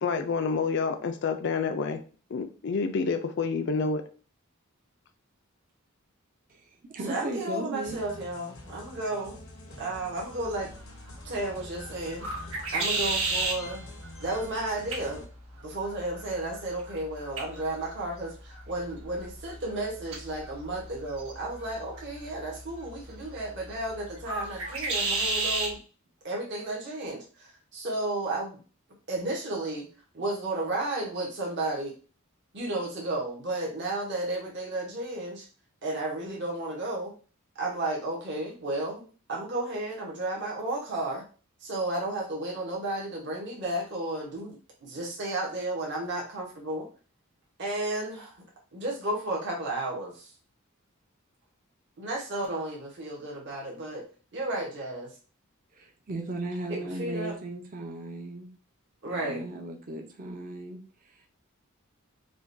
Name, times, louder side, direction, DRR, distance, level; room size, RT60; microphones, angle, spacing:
voice 1, 0.0-2.0 2.3-4.0, left 4 dB, 55° left, 7 dB, 0.4 m, -28 dB
voice 2, 6.5-8.0 55.7-58.5 59.0-61.3, right 2 dB, 40° right, 2 dB, 0.5 m, -37 dB
voice 3, 7.1-9.4 9.8-10.7 11.2-13.8 14.2-15.3 15.6-25.8 26.2-28.6 29.1-29.9 30.1-31.9 32.5-35.5 35.8-37.1 37.5-41.2 41.6-46.9 47.6-48.3 48.7-50.3 52.0-54.0 54.3-55.1 56.7-57.3 59.0-59.4, right 2 dB, 55° right, -2 dB, 1.0 m, -33 dB
sound 1, 7.9-15.2, left 2 dB, 80° left, 0.8 m, -47 dB
sound 2, 10.4-25.8, right 3 dB, 90° right, 1.4 m, -35 dB
4.9 x 2.2 x 2.6 m, 0.37 s
head